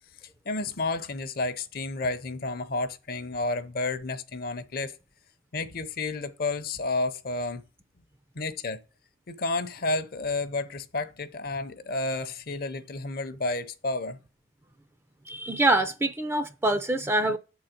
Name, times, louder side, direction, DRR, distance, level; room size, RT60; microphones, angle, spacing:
voice 1, 0.5-5.0 5.5-7.6 8.3-8.8 9.3-14.2, left 2 dB, 50° left, 0.6 m, -31 dB
voice 2, 15.3-17.4, right 2 dB, 10° right, 0.4 m, -25 dB
7.0 x 3.9 x 5.7 m
head